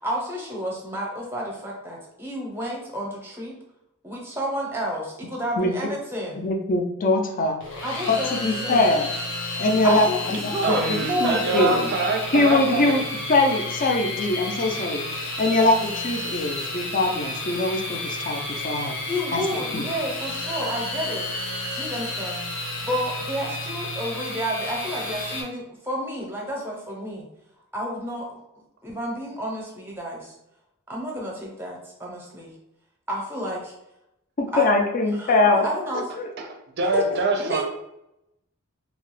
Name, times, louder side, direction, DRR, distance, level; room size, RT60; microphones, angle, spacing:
voice 1, 0.0-3.5 4.0-6.4 7.8-8.9 9.8-11.9 19.1-21.3 21.7-22.5 22.8-27.3 27.7-28.4 28.8-30.3 30.9-32.5 33.1-33.7 34.5-34.7 35.1-36.1 36.9-37.0 37.4-37.6, equal, 10° right, -3 dB, 0.7 m, -30 dB
voice 2, 6.4-7.6 8.1-9.1 9.6-11.8 12.3-13.0 13.3-19.0 19.3-19.4 19.7-19.8 34.4-35.7 35.9-36.3, left 2 dB, 40° left, 3 dB, 0.4 m, -22 dB
sound 1, 7.6-25.4, left 1 dB, 60° left, 0.9 m, -31 dB
voice 3, 10.6-13.1 16.4-16.5 36.4-36.5 36.8-37.6, right 2 dB, 50° right, 3 dB, 0.5 m, -25 dB
2.9 x 2.3 x 3.1 m, 0.85 s
head